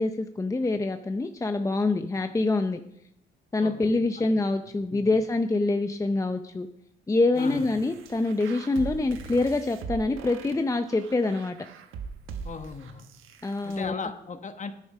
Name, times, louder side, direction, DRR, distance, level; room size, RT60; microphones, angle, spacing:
voice 1, 0.0-2.8 3.5-6.7 7.1-11.6 13.4-13.9, left 2 dB, 15° left, 8 dB, 0.6 m, -25 dB
voice 2, 3.6-3.9 4.2-4.3 4.9-5.1 7.3-7.7 12.4-13.0 13.6-14.7, left 5 dB, 40° left, 8 dB, 1.2 m, -37 dB
sound 1, 7.4-13.8, right 5 dB, 85° right, 1.1 m, -41 dB
9.9 x 8.7 x 5.5 m, 0.80 s
cardioid pair, 90°, 20 cm